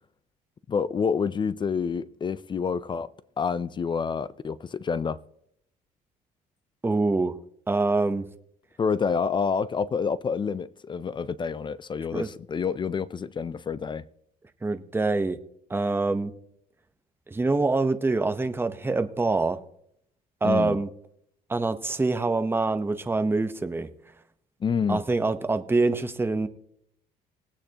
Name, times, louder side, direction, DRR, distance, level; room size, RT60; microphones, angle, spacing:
voice 1, 0.7-5.2 8.8-14.1 20.4-20.8 24.6-25.0, left 6 dB, 30° left, 0.4 m, -28 dB
voice 2, 6.8-7.3 7.7-8.3 12.1-12.3 14.6-15.4 15.7-16.3 17.3-19.6 20.4-20.9 21.5-23.9 24.9-26.5, right 3 dB, 15° right, 0.8 m, -25 dB
20.0 x 8.7 x 2.9 m
cardioid pair, 110°, 17 cm